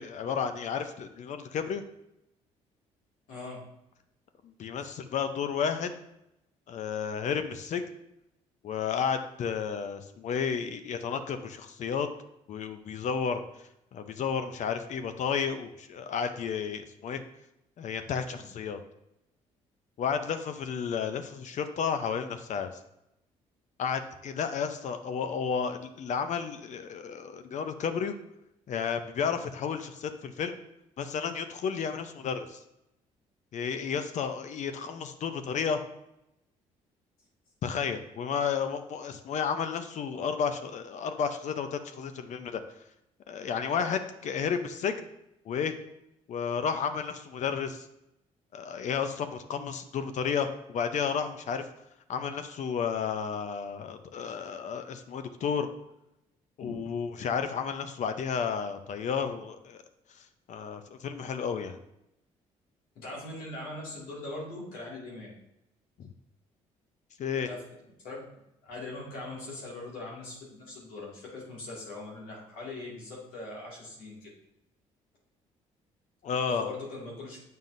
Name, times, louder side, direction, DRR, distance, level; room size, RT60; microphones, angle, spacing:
voice 1, 0.0-1.8 4.4-5.9 6.7-7.9 8.6-12.1 12.5-17.2 17.8-18.8 20.0-22.7 23.8-28.1 28.7-30.6 31.0-32.6 33.5-35.8 37.6-42.6 43.3-45.1 45.4-45.7 46.3-47.9 48.5-51.7 52.1-55.7 56.6-59.8 60.1-61.8 66.0-66.1 67.2-67.5 76.2-76.7, left 6 dB, 60° left, 9 dB, 0.6 m, -32 dB
voice 2, 3.3-3.6 18.4-18.5 56.6-56.7 63.0-65.3 67.5-67.6 68.0-68.2 68.6-74.3 76.3-77.4, left 2 dB, 85° left, -5 dB, 2.3 m, -41 dB
7.5 x 5.5 x 2.6 m, 0.84 s
supercardioid pair, 70°, 14 cm